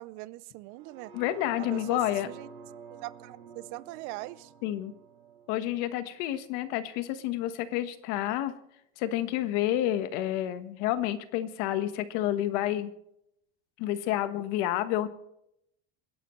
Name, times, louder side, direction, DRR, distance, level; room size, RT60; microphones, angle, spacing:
voice 1, 0.0-1.1 1.6-2.0 2.2-2.5 2.9-4.5, right 19 dB, 60° right, 18 dB, 0.7 m, -41 dB
sound 1, 0.7-6.9 7.3-7.4, right 6 dB, 85° right, 6.8 m, -50 dB
voice 2, 1.1-2.3 4.6-4.9 5.5-8.5 9.0-12.9 13.8-15.1, left 13 dB, 70° left, 11 dB, 1.3 m, -29 dB
27.5 x 11.0 x 3.2 m, 0.79 s
cardioid pair, 160°, 34 cm